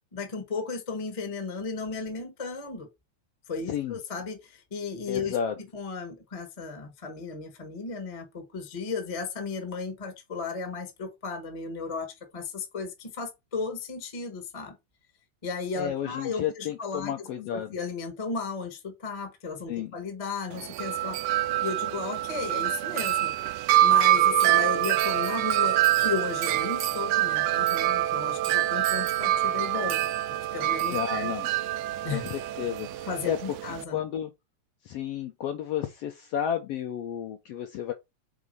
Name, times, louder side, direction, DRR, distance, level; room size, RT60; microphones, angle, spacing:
voice 1, 0.1-2.9 3.5-5.4 5.7-14.8 15.4-23.3 23.8-31.3 32.0-32.2 33.1-34.0, left 4 dB, 30° left, 0.6 m, -35 dB
voice 2, 5.1-5.5 15.8-17.7 19.7-19.9 30.9-31.5 32.1-33.4 33.9-34.3 34.8-37.9, left 9 dB, 75° left, 1.4 m, -32 dB
Wind chime, 20.5-33.8, right 13 dB, 90° right, 1.4 m, -25 dB
4.8 x 4.2 x 5.3 m
omnidirectional pair, 3.4 m